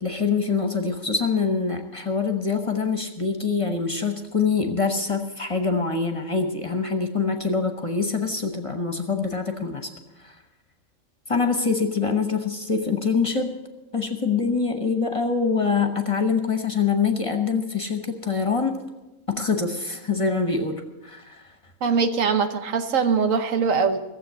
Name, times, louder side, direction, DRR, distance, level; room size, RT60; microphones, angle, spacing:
voice 1, 0.0-9.9 10.2-10.3 11.3-13.5 13.9-18.8 19.3-21.4, left 5 dB, 30° left, 5 dB, 1.0 m, -24 dB
voice 2, 21.8-24.0, right 5 dB, 80° right, 8 dB, 1.3 m, -22 dB
15.5 x 7.6 x 8.0 m, 1.0 s
omnidirectional pair, 1.3 m